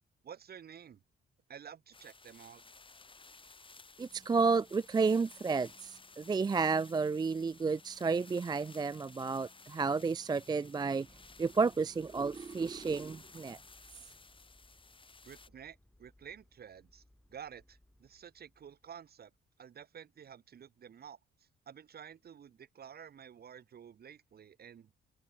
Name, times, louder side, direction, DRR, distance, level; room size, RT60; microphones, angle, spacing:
voice 1, 0.2-1.0 1.5-2.6 15.2-17.0 17.3-19.3 19.6-24.9, right 8 dB, 50° right, 2.0 m, -51 dB
sound 1, 1.9-15.5, left 4 dB, 25° left, 3.9 m, -56 dB
voice 2, 4.0-11.1 11.4-13.6, right 4 dB, 20° right, 0.4 m, -31 dB
sound 2, 11.0-19.4, left 1 dB, 5° left, 4.4 m, -65 dB
cardioid pair, 90°, 20 cm